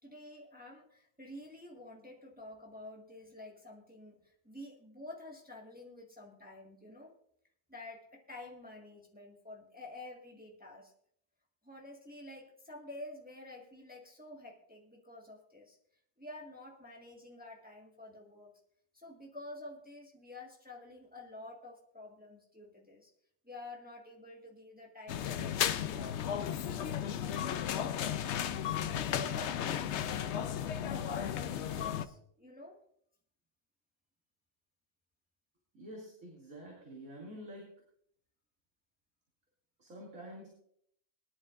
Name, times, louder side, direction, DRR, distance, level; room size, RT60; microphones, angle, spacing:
voice 1, 0.0-7.1 7.7-10.9 11.6-15.8 16.2-18.5 18.9-23.1 23.4-28.2 28.7-32.8, left 2 dB, 5° right, -1 dB, 1.5 m, -49 dB
sound 1, 25.1-32.1, left 9 dB, 65° left, 0.7 m, -34 dB
voice 2, 35.7-37.7 39.8-40.5, equal, 60° right, -3 dB, 3.0 m, -48 dB
21.0 x 11.0 x 2.5 m, 0.67 s
omnidirectional pair, 1.6 m